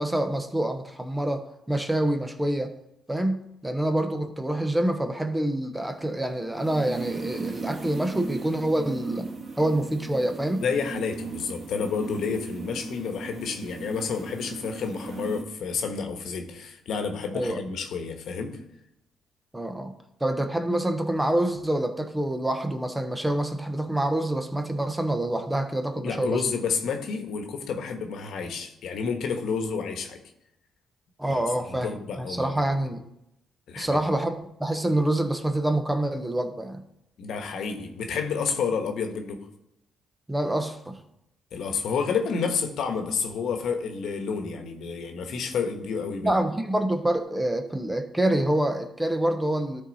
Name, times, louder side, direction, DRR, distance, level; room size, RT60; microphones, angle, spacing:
voice 1, 0.0-2.7 3.1-9.3 9.6-10.6 17.3-17.6 19.5-19.9 20.2-26.5 31.2-33.0 33.8-36.8 40.3-41.0 46.2-49.8, right 1 dB, 10° right, 7 dB, 0.9 m, -26 dB
sound 1, 5.8-15.4, right 4 dB, 50° right, 1.7 m, -37 dB
voice 2, 10.6-18.6 25.9-30.2 31.3-31.4 31.7-32.7 33.7-34.0 37.2-39.4 41.5-46.3, left 5 dB, 75° left, 5 dB, 1.2 m, -30 dB
12.5 x 4.1 x 4.1 m, 0.82 s
cardioid pair, 90°, 0 cm